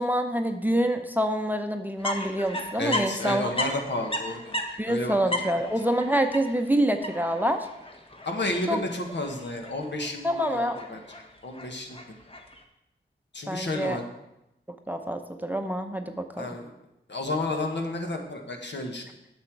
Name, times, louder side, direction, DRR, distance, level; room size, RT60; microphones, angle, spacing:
voice 1, 0.0-3.5 4.8-7.7 8.7-8.8 10.2-10.8 13.5-14.0 14.9-16.5, right 1 dB, 10° right, 6 dB, 0.8 m, -26 dB
sound 1, 2.0-12.6, left 1 dB, 25° left, 1.2 m, -36 dB
voice 2, 2.8-4.6 4.9-5.2 5.4-5.5 8.2-11.0 11.4-12.0 13.3-14.0 16.4-16.7 17.1-19.1, left 2 dB, 60° left, 2 dB, 1.5 m, -31 dB
8.3 x 6.6 x 4.7 m, 0.89 s
cardioid pair, 40°, 20 cm